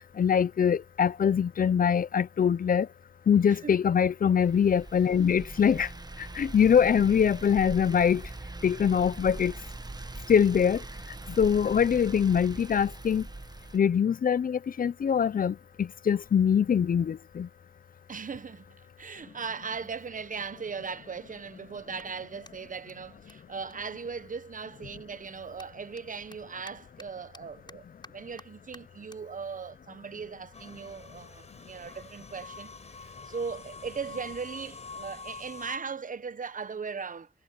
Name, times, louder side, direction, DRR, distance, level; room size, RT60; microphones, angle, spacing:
voice 1, 0.2-2.9 3.3-5.9 6.4-8.2 8.6-9.5 10.3-10.8 11.4-13.2 13.7-17.5, left 7 dB, 65° left, 0.6 m, -23 dB
sound 1, 4.4-13.8, right 2 dB, 25° right, 1.3 m, -42 dB
voice 2, 18.1-32.7 33.0-37.3, right 5 dB, 55° right, 0.9 m, -38 dB
Clapping, 23.7-24.7 25.0-31.6, left 2 dB, 30° left, 7.2 m, -57 dB
sound 2, 30.5-35.8, left 4 dB, 45° left, 4.5 m, -46 dB
cardioid pair, 55°, 16 cm